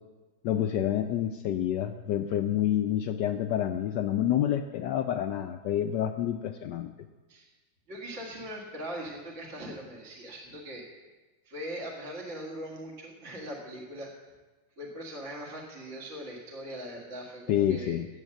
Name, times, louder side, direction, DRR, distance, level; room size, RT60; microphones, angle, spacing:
voice 1, 0.4-6.9 17.5-18.1, left 10 dB, 75° left, 7 dB, 1.0 m, -28 dB
voice 2, 7.9-11.1 11.5-14.1 14.8-18.0, equal, 40° right, -2 dB, 2.0 m, -40 dB
9.7 x 8.0 x 7.5 m, 1.2 s
omnidirectional pair, 2.2 m